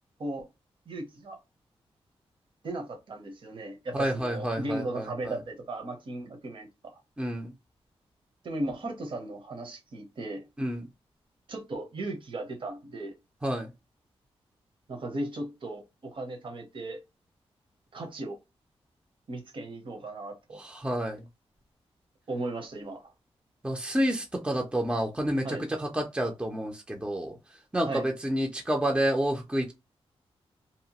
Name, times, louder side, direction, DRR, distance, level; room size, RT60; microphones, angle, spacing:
voice 1, 0.9-1.4 2.6-7.0 8.4-10.4 11.5-13.1 14.9-17.0 17.9-18.4 19.3-20.6 22.3-23.1 25.4-25.7 27.8-28.0, right 2 dB, 55° right, 0.9 m, -36 dB
voice 2, 3.9-5.3 7.2-7.5 10.6-10.9 13.4-13.7 20.6-21.2 23.6-27.4 27.7-29.7, right 1 dB, 10° right, 0.5 m, -29 dB
2.8 x 2.1 x 2.9 m
cardioid pair, 90°, 11 cm